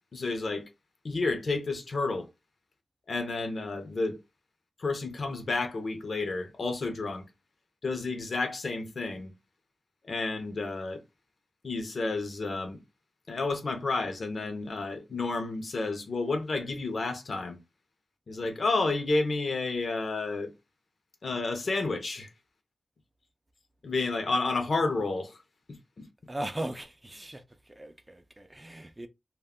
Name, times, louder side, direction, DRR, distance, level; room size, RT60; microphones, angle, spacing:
voice 1, 0.1-0.7 1.0-2.3 3.1-4.2 4.8-7.2 7.8-9.3 10.0-11.0 11.6-12.8 13.3-17.6 18.3-20.5 21.2-22.3 23.8-25.4 25.7-26.1, left 3 dB, 60° left, 0.5 m, -31 dB
voice 2, 26.3-27.4 27.7-29.1, right 1 dB, 15° right, 0.3 m, -38 dB
2.2 x 2.0 x 3.5 m
wide cardioid pair, 95°, 0 cm